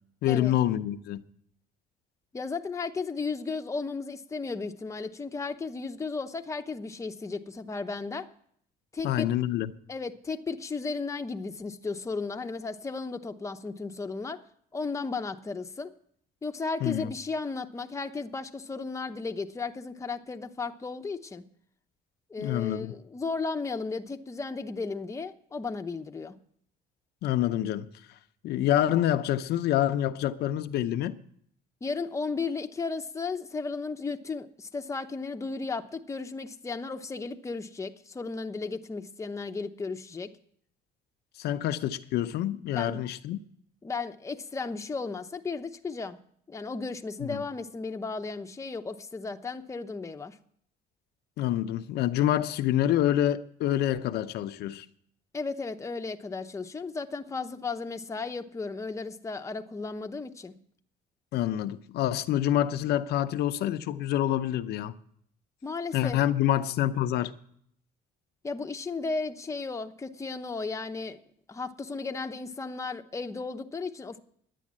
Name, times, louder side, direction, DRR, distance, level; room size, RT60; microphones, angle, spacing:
voice 1, 0.2-1.2 9.0-9.7 16.8-17.1 22.4-22.9 27.2-27.9 28.4-31.2 41.4-43.4 47.2-47.4 51.4-54.9 61.3-64.9 65.9-67.3, left 12 dB, 75° left, 0.7 m, -27 dB
voice 2, 2.3-8.3 8.9-9.3 9.9-14.4 14.7-15.9 16.4-21.4 22.3-26.3 31.8-40.3 42.7-43.0 43.8-46.2 46.5-50.4 55.3-60.5 65.6-66.2 68.4-71.2 71.5-74.2, left 4 dB, 15° left, 0.8 m, -34 dB
11.0 x 9.3 x 7.4 m
cardioid pair, 110°, 17 cm